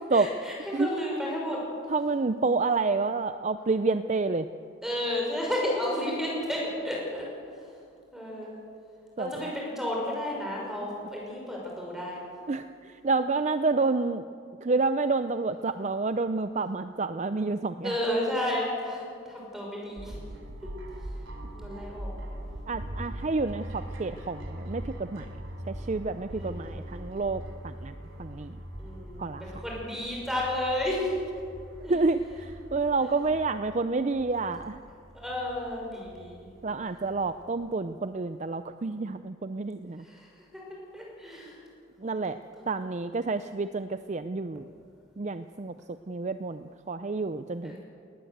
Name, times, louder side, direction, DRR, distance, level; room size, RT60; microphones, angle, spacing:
voice 1, 0.1-1.6 4.8-7.3 8.1-8.6 9.2-12.2 17.8-20.1 20.6-20.7 21.5-22.1 26.3-26.7 28.8-31.1 31.8-32.0 33.0-33.1 35.1-36.5 40.0-40.3 40.9-41.6 42.6-42.7 47.6-47.8, left 1 dB, ahead, -3 dB, 6.2 m, -32 dB
voice 2, 1.9-4.5 9.2-9.5 12.5-14.3 14.6-17.9 22.7-25.3 25.7-27.9 28.2-28.5 29.2-29.4 31.9-34.8 36.6-40.0 42.0-42.4 42.7-44.6 45.2-45.7 46.1-47.8, right 3 dB, 35° right, 11 dB, 0.5 m, -29 dB
sound 1, 20.0-37.5, equal, 65° right, 3.3 m, -42 dB
20.0 x 19.0 x 8.0 m, 2.3 s
head